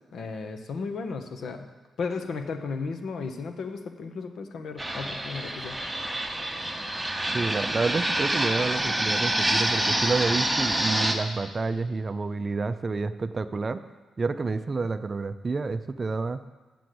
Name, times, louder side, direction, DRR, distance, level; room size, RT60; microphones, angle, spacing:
voice 1, 0.1-1.7 2.0-5.8, left 4 dB, 70° left, 6 dB, 1.0 m, -34 dB
Fixed-wing aircraft airplane, 4.8-11.1, right 1 dB, 5° right, 1.0 m, -27 dB
voice 2, 7.3-13.8 14.2-16.4, right 4 dB, 30° right, 11 dB, 0.4 m, -29 dB
6.9 x 6.6 x 7.8 m, 1.4 s
cardioid pair, 110°, 0 cm